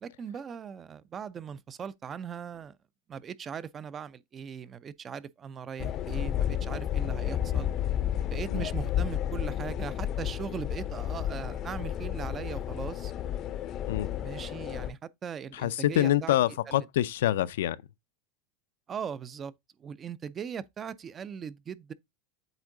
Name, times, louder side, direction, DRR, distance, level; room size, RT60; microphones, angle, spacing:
voice 1, 0.0-2.8 3.1-7.7 8.3-13.1 14.2-16.4 16.7-16.9 18.9-19.5 19.8-21.9, right 7 dB, 20° right, 0.4 m, -39 dB
sound 1, 5.8-14.9, left 10 dB, 30° left, 0.5 m, -31 dB
voice 2, 15.5-17.8, left 13 dB, 80° left, 0.4 m, -26 dB
8.1 x 3.6 x 3.8 m
supercardioid pair, 155°, 0 cm